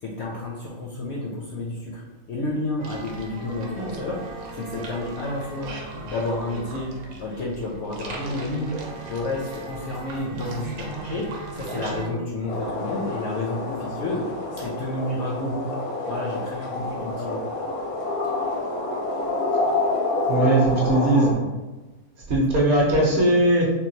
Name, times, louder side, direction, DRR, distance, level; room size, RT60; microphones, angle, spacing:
voice 1, 0.0-2.0 2.3-4.2 4.5-5.7 6.0-6.9 7.2-8.7 9.0-15.7 16.1-17.4, left 2 dB, 65° left, -3 dB, 0.7 m, -30 dB
sound 1, 2.8-12.1, right 2 dB, 80° right, 1.1 m, -37 dB
sound 2, 12.5-21.3, left 2 dB, 85° left, 1.2 m, -28 dB
voice 2, 20.3-21.3 22.3-23.7, right 1 dB, 55° right, -3 dB, 0.9 m, -19 dB
3.7 x 2.3 x 2.7 m, 1.2 s
omnidirectional pair, 1.6 m